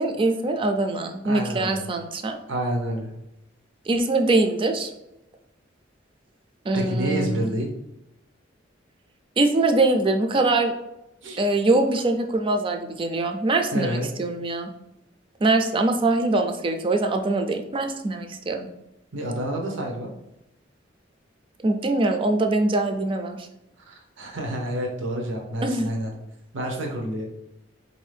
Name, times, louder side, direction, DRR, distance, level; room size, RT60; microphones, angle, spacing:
voice 1, 0.0-2.4 3.9-4.9 6.7-7.4 9.4-10.7 11.4-14.7 15.4-18.7 21.6-23.4 25.6-25.9, right 2 dB, 30° right, 5 dB, 0.4 m, -23 dB
voice 2, 1.2-1.8 2.5-3.1 6.7-7.7 11.2-11.4 13.7-14.1 17.8-17.9 19.1-20.1 23.9-26.1 26.5-27.3, right 1 dB, 80° right, 1 dB, 0.7 m, -28 dB
3.8 x 2.6 x 3.3 m, 0.89 s
head